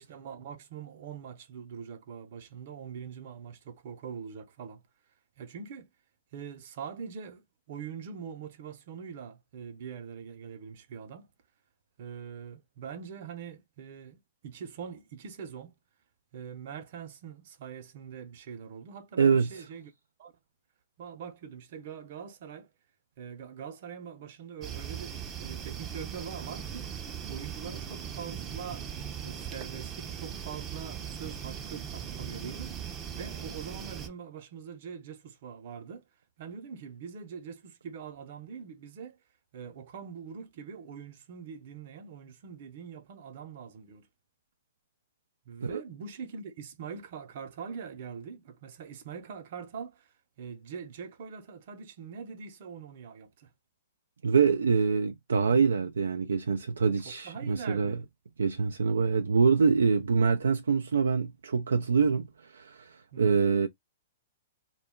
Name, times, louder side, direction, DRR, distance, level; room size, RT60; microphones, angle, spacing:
voice 1, 0.0-4.8 5.4-5.9 6.3-11.3 12.0-15.7 16.3-19.9 20.2-20.3 21.0-22.7 23.2-26.9 27.3-28.9 29.2-36.0 36.4-39.2 39.5-44.1 45.5-53.5 57.0-58.1 63.1-63.4, right 6 dB, 55° right, 0.8 m, -43 dB
voice 2, 19.2-19.5 45.6-45.8 54.2-58.0 58.4-63.7, right 5 dB, 85° right, 0.3 m, -25 dB
sound 1, 24.6-34.1, right 8 dB, 25° right, 0.5 m, -39 dB
2.3 x 2.2 x 3.6 m
hypercardioid pair, 125°, 0 cm